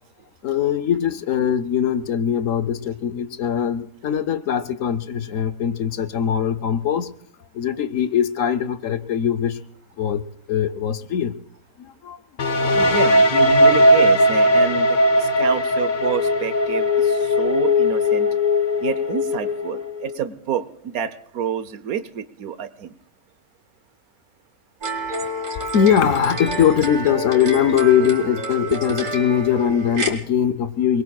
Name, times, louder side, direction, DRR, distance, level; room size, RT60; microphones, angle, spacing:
voice 1, 0.4-7.2 7.5-9.6 10.0-10.2 10.5-11.4 11.8-12.2 25.7-31.0, left 8 dB, 65° left, 1.1 m, -21 dB
sound 1, 12.4-20.1, left 1 dB, 45° left, 0.7 m, -18 dB
voice 2, 12.7-18.3 18.8-22.9, right 9 dB, 75° right, 1.3 m, -28 dB
sound 2, 24.8-30.1, right 1 dB, 60° right, 2.3 m, -29 dB
28.5 x 21.0 x 2.3 m
omnidirectional pair, 1.5 m